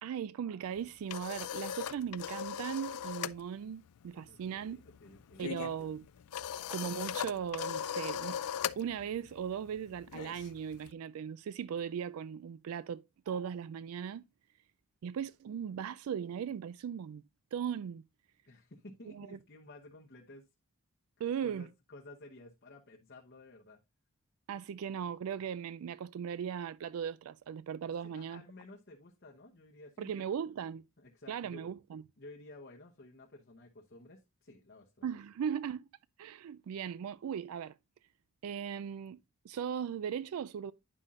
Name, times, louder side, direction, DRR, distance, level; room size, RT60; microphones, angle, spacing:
voice 1, 0.0-4.8 5.4-6.1 6.7-8.4 8.8-14.2 15.0-17.2 17.5-18.0 19.1-19.4 21.2-21.7 24.5-28.4 30.0-30.8 31.3-32.0 35.0-35.8 36.2-37.7 38.4-39.2 39.4-40.7, right 8 dB, 70° right, 0.3 m, -38 dB
sound 1, 0.7-3.4 3.7-4.0 4.2-10.9, left 9 dB, 90° left, 0.4 m, -39 dB
voice 2, 4.3-5.5 18.5-20.5 21.4-23.8 28.0-30.3 31.0-31.7 32.2-35.1, left 2 dB, 45° left, 1.0 m, -54 dB
9.9 x 5.6 x 2.5 m
head